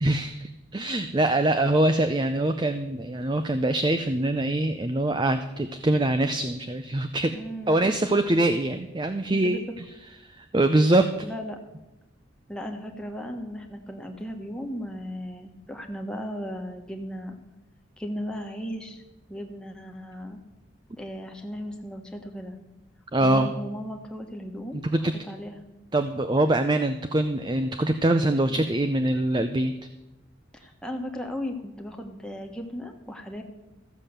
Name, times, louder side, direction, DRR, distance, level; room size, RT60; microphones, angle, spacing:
voice 1, 0.0-7.3 7.7-9.8 10.4-11.1 23.1-23.5 24.7-25.1 25.9-29.7, right 1 dB, 25° right, 9 dB, 0.5 m, -24 dB
voice 2, 7.3-7.8 9.1-9.6 11.2-11.6 12.5-17.4 18.0-19.0 19.3-20.4 21.0-22.6 23.2-25.6 30.5-33.4, equal, 5° left, 2 dB, 1.3 m, -36 dB
14.5 x 7.5 x 6.7 m, 1.0 s
head